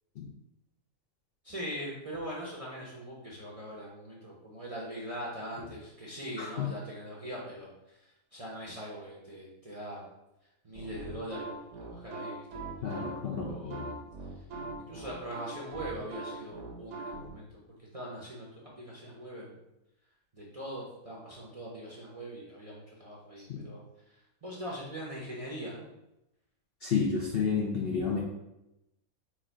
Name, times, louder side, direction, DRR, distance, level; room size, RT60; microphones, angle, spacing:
voice 1, 1.4-8.0 8.3-10.0 10.6-12.5 12.8-13.1 13.5-14.0 14.9-17.6 17.9-19.6 20.3-23.8 24.1-25.9, equal, 35° right, -5 dB, 0.6 m, -42 dB
voice 2, 6.4-6.7 12.8-13.9 23.5-23.6 26.8-28.2, left 5 dB, 60° left, -3 dB, 0.6 m, -31 dB
sound 1, 10.7-17.3, right 3 dB, 60° right, 1.0 m, -41 dB
4.6 x 2.4 x 4.5 m, 0.90 s
omnidirectional pair, 1.6 m